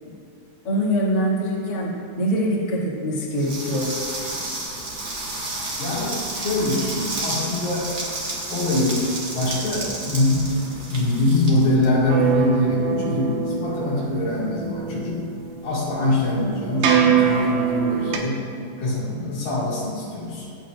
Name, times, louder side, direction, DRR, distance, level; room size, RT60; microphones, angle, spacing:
voice 1, 0.6-1.9 2.2-3.9, equal, 30° left, -7 dB, 2.5 m, -23 dB
sound 1, 3.4-12.4, right 2 dB, 35° right, 2.0 m, -31 dB
voice 2, 5.8-7.9 8.5-9.1 9.3-15.3 15.6-18.5 18.8-20.5, left 2 dB, 70° left, -6 dB, 4.0 m, -23 dB
sound 2, 12.1-18.2, right 7 dB, 80° right, 2.8 m, -23 dB
24.0 x 9.0 x 2.6 m, 2.6 s
omnidirectional pair, 4.2 m